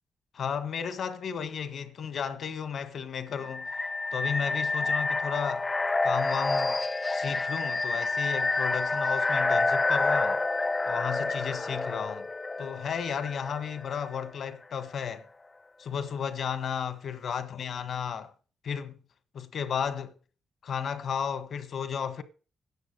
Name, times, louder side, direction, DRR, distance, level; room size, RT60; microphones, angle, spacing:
voice 1, 0.3-3.7 4.1-5.7 6.0-6.8 7.1-10.4 10.9-12.3 12.6-15.3 15.8-18.3 18.6-19.0 19.3-20.1 20.6-22.2, left 7 dB, 70° left, 1.5 m, -33 dB
sound 1, 3.4-14.1, left 3 dB, 30° left, 0.5 m, -28 dB
10.0 x 6.9 x 8.2 m
supercardioid pair, 55°, 0 cm